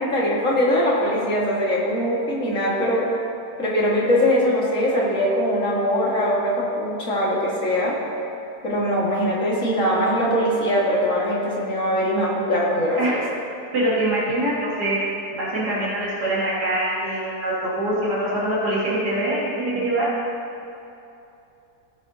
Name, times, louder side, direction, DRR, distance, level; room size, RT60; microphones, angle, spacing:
voice 1, 0.1-3.1 3.6-7.9 8.6-13.2, equal, 50° left, -5 dB, 2.2 m, -21 dB
voice 2, 13.7-15.0 15.3-20.1, right 1 dB, 75° right, -9 dB, 2.5 m, -24 dB
17.0 x 8.0 x 2.8 m, 2.8 s
omnidirectional pair, 1.7 m